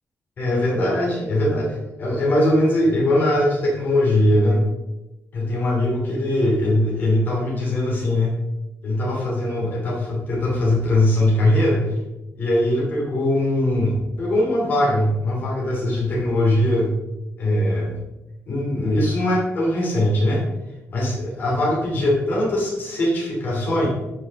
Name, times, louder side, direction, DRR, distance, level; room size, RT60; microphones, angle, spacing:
voice 1, 0.4-4.6 5.3-8.4 8.8-11.9 12.4-16.9 17.4-18.0 18.5-20.4 20.9-23.9, left 1 dB, 40° left, -3 dB, 2.9 m, -21 dB
12.0 x 5.7 x 3.7 m, 1.0 s
wide cardioid pair, 180°, 5 cm